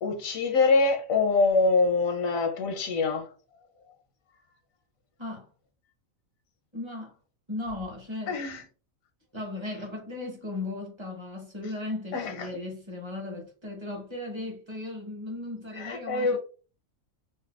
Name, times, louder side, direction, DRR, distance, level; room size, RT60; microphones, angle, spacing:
voice 1, 0.0-3.3 8.3-8.6 12.1-12.5 15.8-16.4, left 3 dB, 85° left, 1.0 m, -24 dB
voice 2, 6.7-7.2 7.5-8.4 9.3-16.4, left 2 dB, 25° right, 0.7 m, -36 dB
4.0 x 2.1 x 2.3 m
omnidirectional pair, 1.4 m